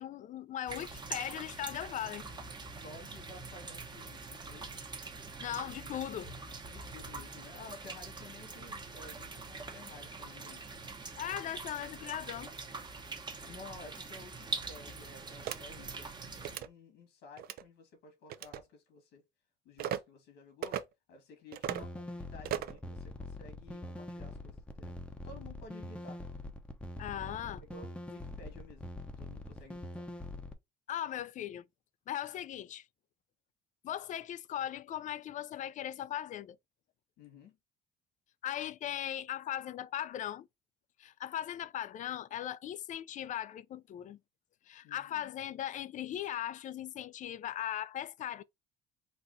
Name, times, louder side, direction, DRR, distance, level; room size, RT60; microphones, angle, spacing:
voice 1, 0.0-2.3 5.4-6.3 11.2-12.5 27.0-27.6 30.9-31.7 32.1-32.9 33.8-36.6 38.4-40.5 41.0-44.2 44.7-48.4, left 11 dB, 50° left, 0.4 m, -38 dB
sound 1, 0.7-16.6, right 4 dB, 25° right, 0.9 m, -44 dB
voice 2, 2.6-4.7 6.7-10.7 13.4-19.2 19.6-20.8 21.1-25.0 25.2-26.2 27.7-30.1 37.2-37.6 44.8-45.3, left 3 dB, 85° left, 2.0 m, -53 dB
sound 2, 15.4-15.6 16.4-16.7 17.4-17.6 18.3-18.6 19.8-20.0 20.6-20.8 21.5-21.9 22.4-22.8, right 10 dB, 65° right, 0.5 m, -36 dB
sound 3, 21.6-30.5, left 1 dB, 5° left, 0.7 m, -44 dB
4.2 x 2.4 x 3.9 m
cardioid pair, 110°, 17 cm